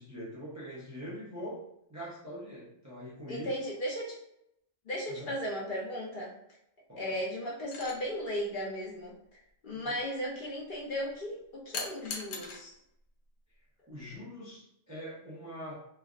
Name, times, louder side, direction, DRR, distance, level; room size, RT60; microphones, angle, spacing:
voice 1, 0.0-1.6 1.9-3.7 5.1-5.3 6.9-7.2 9.7-10.3 13.9-15.9, equal, 25° right, -7 dB, 0.4 m, -43 dB
voice 2, 3.3-4.2 4.9-6.3 7.0-9.1 9.6-12.7, equal, 50° left, -5 dB, 0.7 m, -36 dB
sound 1, 7.7-8.0 11.7-12.6 14.0-14.2, left 4 dB, 80° left, 1.0 m, -39 dB
3.2 x 2.2 x 2.4 m, 0.78 s
omnidirectional pair, 1.3 m